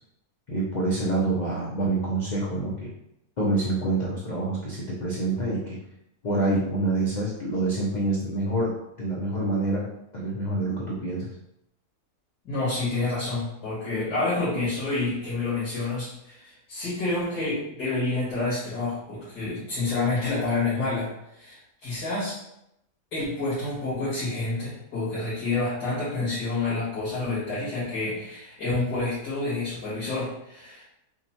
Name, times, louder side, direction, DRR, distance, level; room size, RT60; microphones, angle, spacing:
voice 1, 0.5-2.9 3.4-5.8 6.2-11.3, right 2 dB, 65° left, -4 dB, 0.4 m, -27 dB
voice 2, 12.5-22.4 23.1-30.8, left 3 dB, 85° left, -11 dB, 2.0 m, -28 dB
5.8 x 2.1 x 2.8 m, 0.82 s
omnidirectional pair, 1.7 m